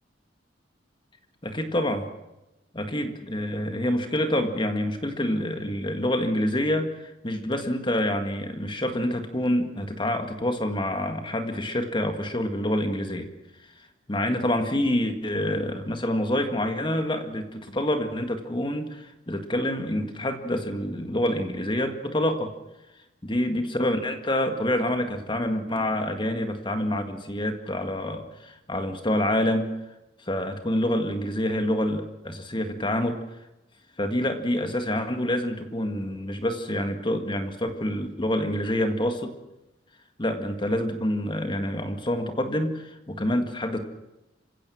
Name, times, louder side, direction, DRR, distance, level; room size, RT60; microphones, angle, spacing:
voice 1, 1.4-2.1 2.7-13.3 14.1-22.5 23.2-29.7 30.2-33.2 34.0-39.4 40.2-43.8, left 1 dB, 25° left, 6 dB, 1.8 m, -27 dB
26.5 x 16.5 x 6.3 m, 0.94 s
head